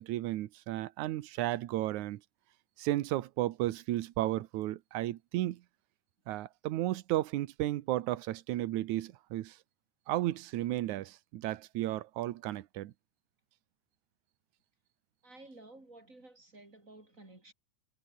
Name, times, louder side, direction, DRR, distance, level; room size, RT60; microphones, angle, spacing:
voice 1, 0.0-2.2 2.8-5.6 6.3-9.6 10.1-12.9, right 15 dB, 75° right, 1.8 m, -33 dB
voice 2, 15.2-17.5, right 2 dB, 20° right, 6.3 m, -53 dB
omnidirectional pair, 4.5 m